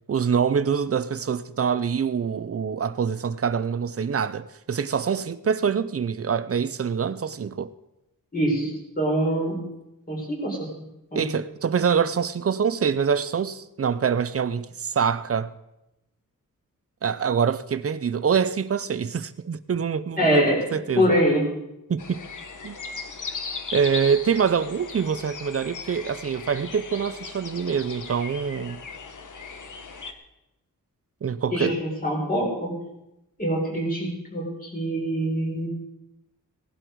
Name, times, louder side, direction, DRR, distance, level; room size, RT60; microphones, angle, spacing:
voice 1, 0.1-7.7 11.1-15.5 17.0-21.1 21.9-22.2 22.6-22.8 23.7-28.8 31.2-31.7, right 6 dB, 45° right, 0.6 m, -25 dB
voice 2, 8.3-8.7 9.0-9.6 10.1-10.7 11.1-11.2 20.2-20.6 20.9-21.4 31.5-32.7 33.4-35.7, equal, 25° left, 4.7 m, -24 dB
sound 1, 22.0-30.1, left 4 dB, 65° left, 1.2 m, -37 dB
18.0 x 11.5 x 4.7 m
wide cardioid pair, 155°, 33 cm